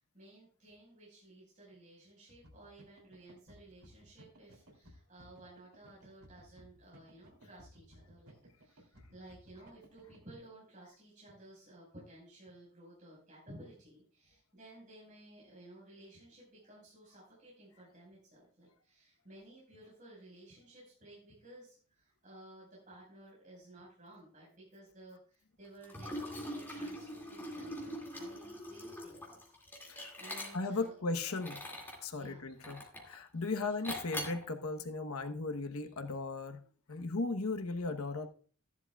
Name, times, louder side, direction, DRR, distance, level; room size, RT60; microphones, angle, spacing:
voice 1, 0.0-31.4 32.1-32.4 33.4-33.8, right 1 dB, 35° right, -6 dB, 4.9 m, -56 dB
sound 1, 2.3-10.4, equal, 90° right, 2.9 m, -59 dB
Liquid, 25.8-30.9 31.3-32.0 32.6-33.2 33.8-34.4, equal, 10° left, 2.2 m, -43 dB
voice 2, 30.5-31.6 32.0-36.6 36.9-38.3, left 3 dB, 85° left, 6 dB, 1.0 m, -37 dB
14.5 x 10.5 x 2.3 m, 0.42 s
head